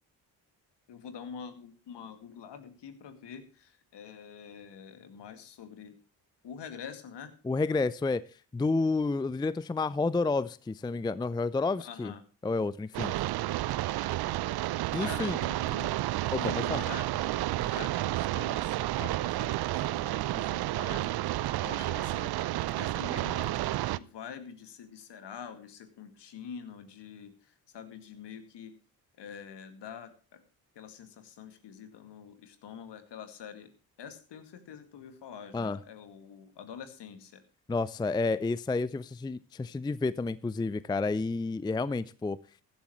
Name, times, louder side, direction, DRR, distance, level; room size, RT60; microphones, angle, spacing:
voice 1, 0.9-6.0 6.4-7.3 11.8-12.2 14.9-15.9 16.4-17.3 17.6-21.2 21.6-23.6 24.0-28.7 29.2-30.4 30.8-33.7 34.0-37.4, left 7 dB, 60° left, 9 dB, 2.2 m, -46 dB
voice 2, 7.4-8.2 8.5-12.1 12.4-13.1 14.9-15.4 16.3-16.8 35.5-35.8 37.7-42.4, left 3 dB, 10° left, 19 dB, 0.5 m, -30 dB
sound 1, 12.9-24.0, right 16 dB, 55° right, 0.6 m, -31 dB
15.0 x 12.0 x 3.1 m, 0.38 s
hypercardioid pair, 50°, 47 cm